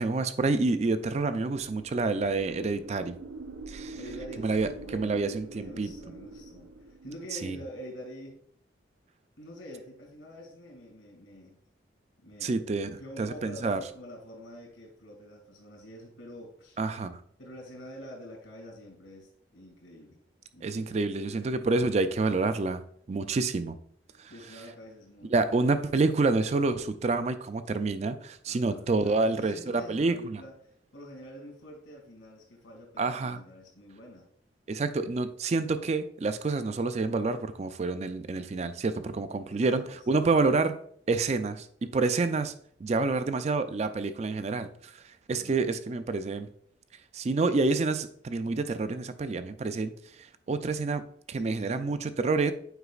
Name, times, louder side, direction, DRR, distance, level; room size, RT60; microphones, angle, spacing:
voice 1, 0.0-3.2 3.7-4.0 4.4-5.9 7.4-7.6 12.4-12.9 13.2-13.8 16.8-17.2 20.6-22.8 23.1-23.8 24.2-24.3 25.3-30.4 33.0-33.4 34.7-40.8 41.1-42.5 42.8-44.7 45.3-46.5 47.1-49.9 50.5-52.5, right 3 dB, 35° right, 11 dB, 0.3 m, -28 dB
sound 1, 1.3-7.2, right 2 dB, 90° right, 0.6 m, -45 dB
voice 2, 3.9-5.2 5.5-8.4 9.4-11.6 12.2-16.8 17.4-20.2 20.5-21.3 24.3-25.5 28.5-34.3 39.5-39.8 40.1-40.3 45.3-45.7 51.4-52.0, equal, 80° left, -1 dB, 2.1 m, -46 dB
8.0 x 5.0 x 2.4 m, 0.62 s
head